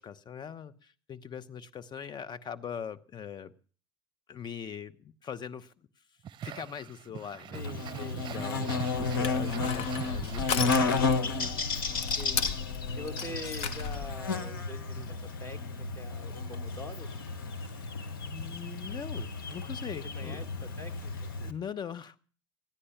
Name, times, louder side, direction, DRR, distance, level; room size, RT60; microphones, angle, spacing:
voice 1, 0.0-3.5 4.3-5.7 6.4-7.6 7.9-11.5 15.0-15.1 17.8-17.9 18.2-20.4 21.4-22.2, left 8 dB, 40° left, 14 dB, 1.0 m, -41 dB
sound 1, 6.2-11.5, right 9 dB, 45° right, 0.6 m, -43 dB
Buzz, 7.5-21.5, left 4 dB, 90° left, 1.1 m, -32 dB
voice 2, 7.5-8.3 12.2-12.5 13.0-15.0 15.4-15.6 16.0-17.1 20.2-21.3, left 1 dB, 20° left, 8 dB, 2.2 m, -44 dB
Crushing, 9.2-14.2, left 7 dB, 65° left, 1.2 m, -36 dB
15.0 x 10.0 x 7.1 m, 0.42 s
hypercardioid pair, 70°, 11 cm